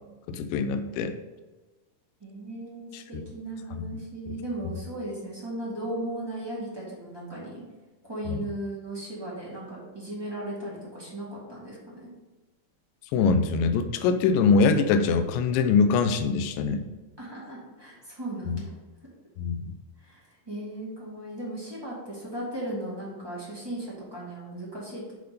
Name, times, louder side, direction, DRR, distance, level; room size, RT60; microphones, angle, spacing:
voice 1, 0.3-1.1 2.9-3.2 3.8-3.9 4.3-4.4 8.3-8.4 13.1-16.9 18.5-18.6 19.4-19.7, left 5 dB, 80° left, 8 dB, 2.1 m, -23 dB
voice 2, 2.2-7.6 8.1-12.1 17.2-18.7 20.0-25.1, right 1 dB, 10° right, -7 dB, 1.1 m, -37 dB
10.0 x 3.6 x 5.2 m, 1.2 s
omnidirectional pair, 4.3 m